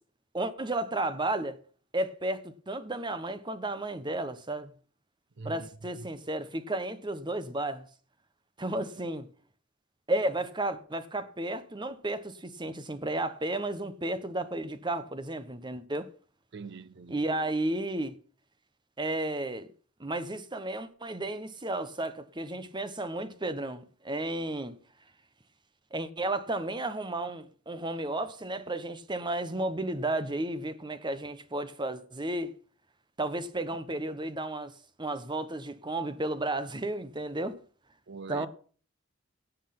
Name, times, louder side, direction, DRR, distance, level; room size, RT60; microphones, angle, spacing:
voice 1, 0.3-1.6 1.9-4.7 5.4-7.9 8.6-9.3 10.1-16.1 17.1-18.2 19.0-19.7 20.0-24.8 25.9-32.5 33.2-34.7 35.0-37.5 38.3-38.5, right 2 dB, 25° right, 1.2 m, -33 dB
voice 2, 5.4-5.7 5.9-6.1 8.7-9.0 16.5-17.3 38.1-38.5, right 4 dB, 65° right, 0.6 m, -44 dB
17.0 x 6.5 x 6.0 m
head